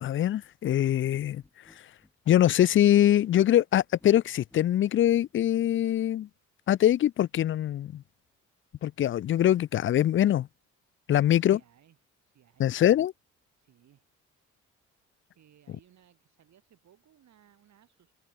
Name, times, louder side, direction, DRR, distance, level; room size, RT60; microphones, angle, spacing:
voice 1, 0.0-1.4 2.3-6.3 6.7-8.0 8.8-10.5 11.1-11.6 12.6-13.1, left 12 dB, 45° left, 0.4 m, -23 dB
sound 1, 1.1-4.6, left 1 dB, 5° left, 2.5 m, -60 dB
voice 2, 11.1-12.0 12.2-12.7 13.6-14.1 15.3-18.1, right 10 dB, 65° right, 7.0 m, -61 dB
open air
cardioid pair, 90°, 30 cm